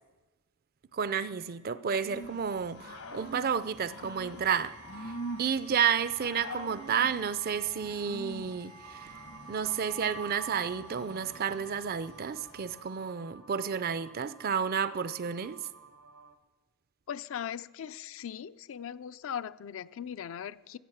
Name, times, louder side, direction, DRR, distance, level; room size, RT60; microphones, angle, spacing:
voice 1, 0.9-4.8 5.0-5.1 5.4-9.1 9.5-15.6, right 7 dB, 40° right, 0.4 m, -31 dB
Growling / Cricket, 2.0-12.9, right 1 dB, 80° left, 1.3 m, -45 dB
sound 1, 4.3-12.9, right 5 dB, 90° right, 1.4 m, -50 dB
sound 2, 8.8-16.4, right 4 dB, 75° right, 0.9 m, -54 dB
voice 2, 17.1-20.8, left 8 dB, 60° left, 0.4 m, -39 dB
15.0 x 8.5 x 7.2 m
head